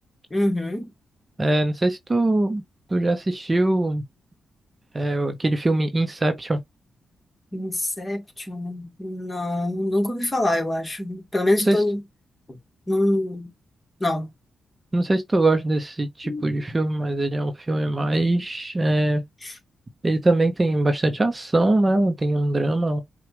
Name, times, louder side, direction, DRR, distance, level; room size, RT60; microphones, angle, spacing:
voice 1, 0.3-0.9 7.5-12.0 12.5-12.6 12.9-13.5 14.0-14.3 16.2-16.5 19.4-19.5, left 1 dB, 25° left, 1.8 m, -25 dB
voice 2, 1.4-2.6 2.9-4.0 4.9-6.6 11.7-11.8 14.9-19.2 20.0-23.0, right 2 dB, 30° right, 0.9 m, -22 dB
5.7 x 2.5 x 3.0 m
supercardioid pair, 50°, 0 cm